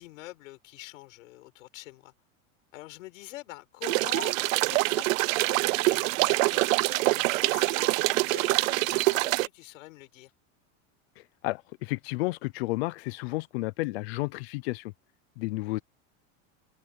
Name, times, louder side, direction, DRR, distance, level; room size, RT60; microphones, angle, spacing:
voice 1, 0.0-2.1 2.7-10.3, left 19 dB, 75° left, 6.1 m, -45 dB
sound 1, 3.8-9.5, right 22 dB, 75° right, 0.6 m, -25 dB
voice 2, 11.2-14.9 15.4-15.8, left 22 dB, 50° left, 0.5 m, -32 dB
supercardioid pair, 175°, 40 cm